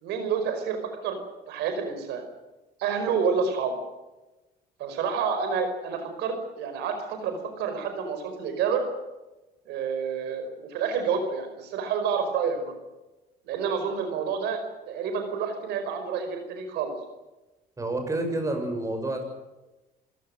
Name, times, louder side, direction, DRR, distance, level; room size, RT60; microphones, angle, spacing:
voice 1, 0.0-1.2 1.5-2.2 2.8-3.7 4.8-8.8 9.7-12.8 13.5-16.9, right 6 dB, 85° right, 7 dB, 5.2 m, -29 dB
voice 2, 17.8-19.2, right 2 dB, 20° right, 5 dB, 7.0 m, -29 dB
27.5 x 17.0 x 7.8 m, 1.1 s
cardioid pair, 110°, 17 cm